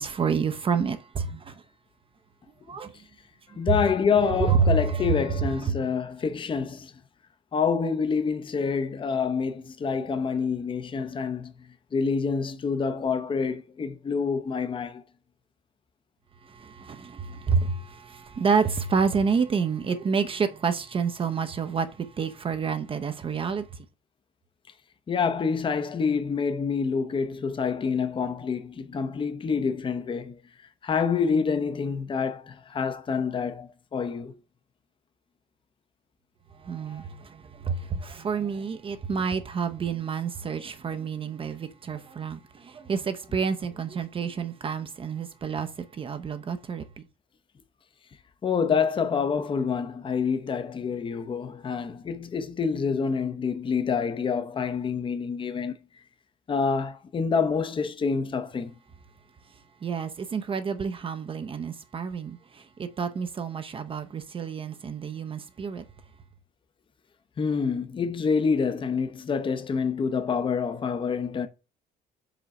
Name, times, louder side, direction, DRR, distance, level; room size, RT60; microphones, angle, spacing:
voice 1, 0.0-1.6 2.7-2.9 3.7-3.8 4.2-5.8 16.4-23.6 36.6-46.8 59.8-65.8, right 5 dB, 30° right, 0.7 m, -29 dB
voice 2, 3.6-6.9 7.5-15.0 25.1-30.4 30.8-34.3 48.4-55.7 56.5-58.7 67.4-71.5, left 5 dB, 30° left, 0.7 m, -27 dB
5.0 x 3.9 x 5.8 m
cardioid pair, 120°, 17 cm